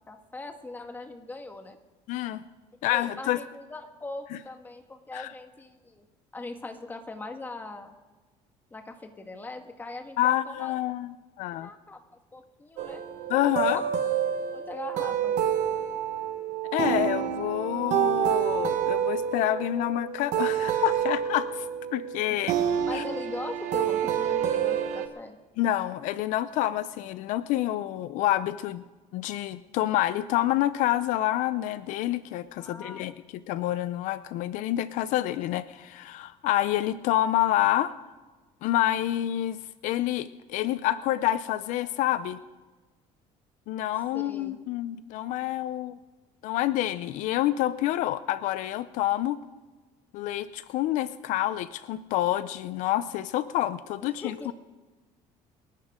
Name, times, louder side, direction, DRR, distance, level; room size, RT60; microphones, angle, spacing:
voice 1, 0.1-1.8 2.9-6.1 6.3-7.9 8.7-10.7 11.6-12.0 12.3-13.0 13.7-13.8 14.5-15.3 22.3-22.4 22.9-25.4 32.6-33.1 44.1-44.6 54.0-54.5, left 2 dB, 15° left, 5 dB, 1.6 m, -40 dB
voice 2, 2.1-2.4 2.8-3.4 4.3-4.4 5.1-5.3 10.2-11.7 13.3-13.8 16.7-22.6 22.9-23.0 25.6-28.8 29.1-33.1 33.5-37.9 38.6-39.6 39.8-42.4 43.7-46.0 46.4-49.4 50.1-54.5, left 14 dB, 75° left, 14 dB, 0.6 m, -28 dB
sound 1, 12.8-25.1, right 9 dB, 65° right, 1.4 m, -28 dB
28.0 x 11.5 x 3.7 m, 1.3 s
cardioid pair, 135°, 13 cm